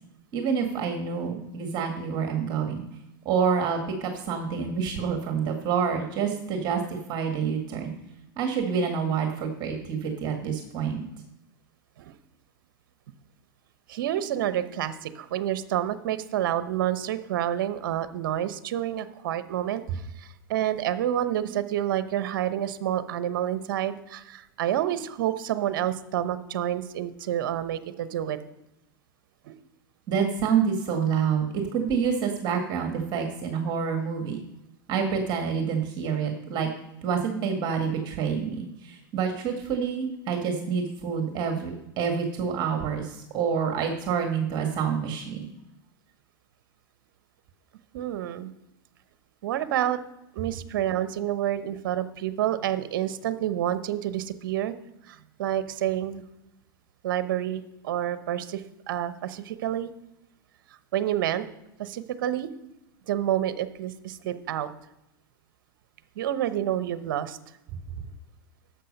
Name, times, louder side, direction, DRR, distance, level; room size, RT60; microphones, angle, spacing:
voice 1, 0.3-2.8 3.3-7.9 8.4-11.0 30.1-34.4 34.9-36.7 37.0-45.5, right 6 dB, 40° right, 4 dB, 1.8 m, -27 dB
voice 2, 13.9-28.4 29.5-29.6 47.9-48.5 49.4-50.0 50.4-54.7 55.1-56.2 57.0-58.6 58.9-59.9 60.9-61.4 61.8-62.5 63.1-64.7 66.2-67.4, right 11 dB, 65° right, 12 dB, 0.9 m, -28 dB
11.5 x 7.5 x 5.4 m, 0.89 s
hypercardioid pair, 110°, 12 cm